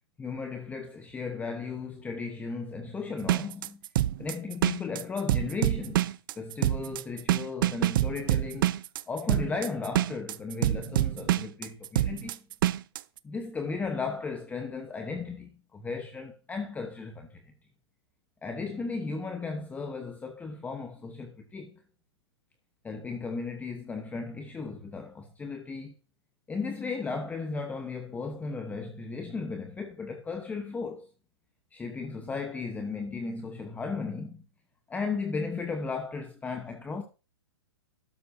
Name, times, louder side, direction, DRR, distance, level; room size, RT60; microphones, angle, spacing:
voice 1, 0.2-3.8 4.2-12.4 13.2-17.5 18.4-21.8 22.8-25.9 26.5-31.1 31.7-34.4 34.9-37.0, left 4 dB, 10° left, 1.1 m, -35 dB
sound 1, 3.2-13.0, right 13 dB, 50° right, 0.5 m, -26 dB
12.5 x 9.9 x 2.8 m
hypercardioid pair, 125°, 14 cm